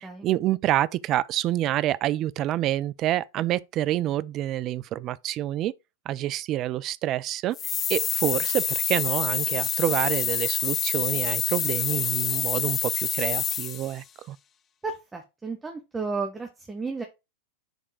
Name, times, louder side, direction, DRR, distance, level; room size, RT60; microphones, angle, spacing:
voice 1, 0.2-5.7 6.1-7.6 7.9-14.4, right 14 dB, 35° right, 0.4 m, -27 dB
sound 1, 7.5-14.0, left 8 dB, 25° left, 0.4 m, -27 dB
voice 2, 14.8-17.0, right 4 dB, 10° right, 1.0 m, -33 dB
6.5 x 3.6 x 4.8 m
figure-of-eight pair, 90°, 0 cm